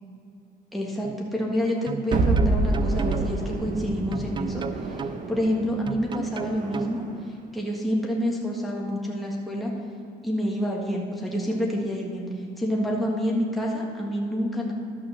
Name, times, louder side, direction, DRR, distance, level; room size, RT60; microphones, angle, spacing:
voice 1, 0.7-4.6 5.3-7.0 7.5-9.7 10.2-12.2 12.6-14.7, equal, ahead, -3 dB, 1.7 m, -27 dB
sound 1, 1.0-1.2 1.9-3.3 4.1-5.2 5.9-6.9, right 6 dB, 30° right, 0.4 m, -33 dB
sound 2, 2.1-7.2, right 2 dB, 50° right, 1.2 m, -28 dB
12.0 x 6.0 x 6.5 m, 2.6 s
cardioid pair, 110°, 17 cm